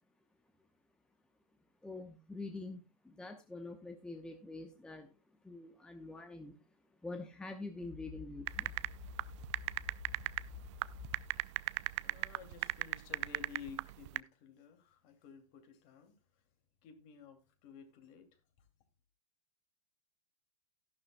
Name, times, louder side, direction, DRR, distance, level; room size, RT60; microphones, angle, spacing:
voice 1, 1.8-5.1 5.4-6.6 7.0-8.7, left 2 dB, 5° left, 0.9 m, -46 dB
sound 1, 7.8-11.4, left 8 dB, 60° left, 2.6 m, -50 dB
sound 2, 8.5-14.2, right 19 dB, 50° right, 0.4 m, -35 dB
voice 2, 11.5-16.4 16.8-18.7, left 7 dB, 45° left, 2.6 m, -54 dB
13.0 x 11.5 x 2.2 m
hypercardioid pair, 140°, 19 cm